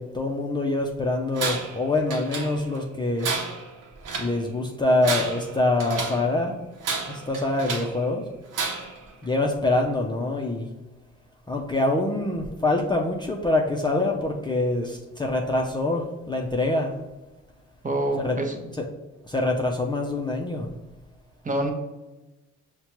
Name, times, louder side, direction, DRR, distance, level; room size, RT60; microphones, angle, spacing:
voice 1, 0.0-3.3 4.2-6.6 7.1-8.2 9.2-10.7 11.5-16.9 18.2-18.4 18.8-18.9 19.3-20.7, left 2 dB, 15° left, 0 dB, 0.5 m, -25 dB
Tools, 1.4-1.8 2.1-2.8 3.2-4.4 4.9-6.3 6.8-8.0 8.5-9.0, right 4 dB, 70° right, 0.8 m, -31 dB
voice 2, 17.8-18.6 21.4-21.7, right 1 dB, 25° right, 4 dB, 0.7 m, -26 dB
5.5 x 2.2 x 2.9 m, 1.1 s
supercardioid pair, 60°, 33 cm